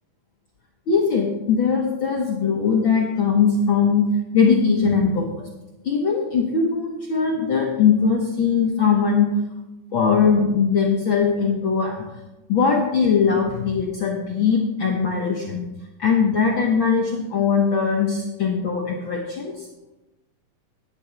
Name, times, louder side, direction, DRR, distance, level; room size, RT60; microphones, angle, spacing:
voice 1, 0.9-4.1 4.3-5.5 5.8-9.3 9.9-12.0 12.5-15.7 16.0-19.5, left 6 dB, 65° left, -1 dB, 1.2 m, -20 dB
10.5 x 10.0 x 4.5 m, 1.0 s
omnidirectional pair, 3.8 m